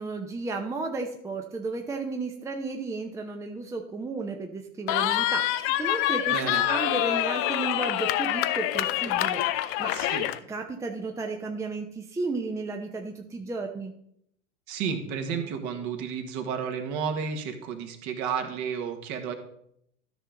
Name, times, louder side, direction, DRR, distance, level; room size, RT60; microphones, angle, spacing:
voice 1, 0.0-10.0 10.5-13.9, right 3 dB, 10° right, 3 dB, 0.7 m, -33 dB
Cheering, 4.9-10.4, left 14 dB, 35° left, 0.5 m, -26 dB
voice 2, 6.3-6.6 9.9-10.3 14.7-19.3, right 6 dB, 45° right, 6 dB, 1.6 m, -32 dB
13.0 x 5.6 x 3.9 m, 0.73 s
figure-of-eight pair, 85°, 37 cm